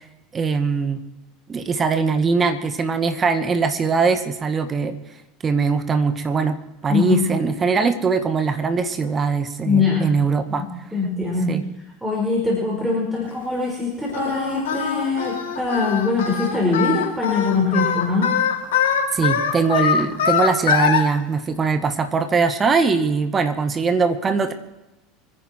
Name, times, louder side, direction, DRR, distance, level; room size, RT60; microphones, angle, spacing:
voice 1, 0.3-1.0 1.5-5.0 5.4-10.7 11.5-11.6 19.1-24.5, right 5 dB, 30° right, 10 dB, 1.8 m, -21 dB
voice 2, 6.9-7.3 9.6-10.0 10.6-10.7 10.9-11.5 12.0-18.3, left 4 dB, 5° right, -3 dB, 5.2 m, -22 dB
Singing, 14.1-21.0, left 8 dB, 75° left, 3.3 m, -22 dB
26.5 x 10.0 x 4.6 m, 0.98 s
hypercardioid pair, 80°, 0 cm